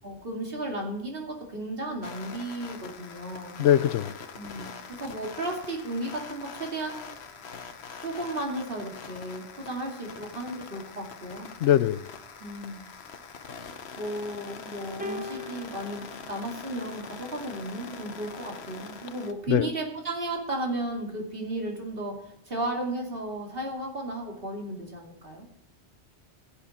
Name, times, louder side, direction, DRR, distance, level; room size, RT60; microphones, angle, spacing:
voice 1, 0.0-3.6 4.3-7.1 8.0-11.5 12.4-12.8 14.0-25.5, right 1 dB, 55° right, 2.8 m, -34 dB
sound 1, 2.0-19.3, left 5 dB, 65° left, 1.2 m, -43 dB
voice 2, 3.6-4.1 11.6-12.0 19.5-19.7, left 11 dB, 85° left, 0.9 m, -21 dB
sound 2, 15.0-17.5 18.5-18.7, left 2 dB, 10° right, 0.5 m, -41 dB
15.5 x 8.9 x 4.3 m
omnidirectional pair, 1.2 m